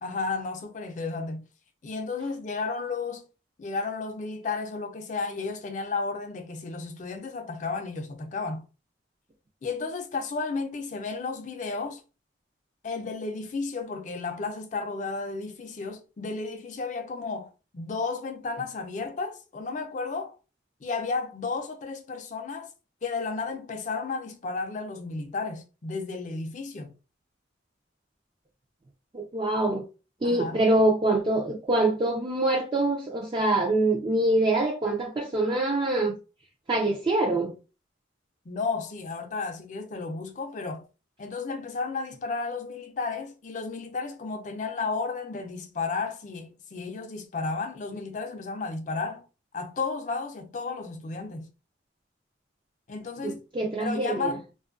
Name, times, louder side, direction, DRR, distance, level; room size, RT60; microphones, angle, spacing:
voice 1, 0.0-1.4 1.8-3.3 3.6-8.6 9.6-12.0 12.8-20.4 20.8-22.7 23.0-26.9 30.2-30.6 38.5-40.8 41.2-49.2 49.5-51.5 52.9-53.4 53.8-54.4, left 4 dB, 40° left, 0.4 m, -33 dB
voice 2, 29.1-29.8 30.2-36.2 36.7-37.5 53.2-54.3, right 2 dB, 25° right, 0.3 m, -25 dB
2.6 x 2.3 x 2.4 m
head